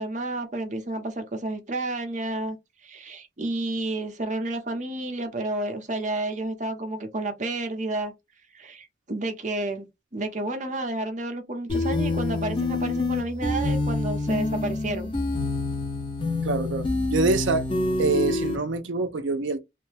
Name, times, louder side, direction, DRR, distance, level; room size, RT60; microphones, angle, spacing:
voice 1, 0.0-2.6 2.8-8.1 8.5-9.9 10.1-15.1, right 2 dB, 40° right, 0.8 m, -30 dB
sound 1, 11.7-18.6, left 2 dB, 25° left, 0.9 m, -27 dB
voice 2, 16.4-17.7 18.0-19.6, right 3 dB, 90° right, 0.6 m, -25 dB
3.2 x 2.2 x 3.3 m
head